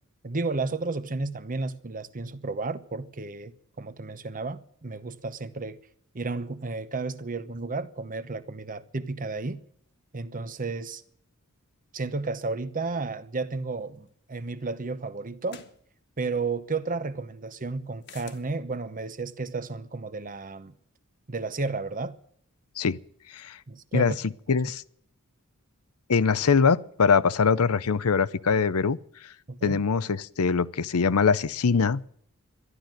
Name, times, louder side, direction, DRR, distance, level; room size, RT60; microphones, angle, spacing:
voice 1, 0.2-5.8 6.1-9.6 10.1-11.0 11.9-15.6 16.2-20.7 21.3-22.2 23.7-24.2 29.5-29.8, right 3 dB, 40° right, 0.9 m, -32 dB
sound 1, 14.1-14.2 15.5-15.8 18.0-18.5, left 5 dB, 55° left, 1.5 m, -46 dB
voice 2, 23.9-24.8 26.1-29.0 29.6-32.0, left 5 dB, 90° left, 0.7 m, -23 dB
13.0 x 11.5 x 9.1 m
head